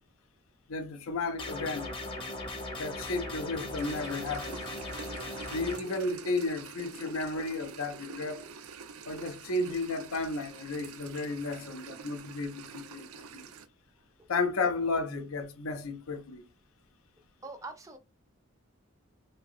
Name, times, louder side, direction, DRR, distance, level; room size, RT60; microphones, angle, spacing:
voice 1, 0.7-1.9 2.8-4.6 5.5-8.4 9.1-13.4 14.3-16.4, left 3 dB, 75° left, 0.5 m, -33 dB
sound 1, 1.4-5.8, left 1 dB, 25° left, 0.8 m, -38 dB
sound 2, 3.8-13.7, right 6 dB, 85° right, 0.5 m, -46 dB
voice 2, 17.4-18.0, right 3 dB, 15° right, 0.5 m, -42 dB
3.3 x 2.7 x 2.4 m
head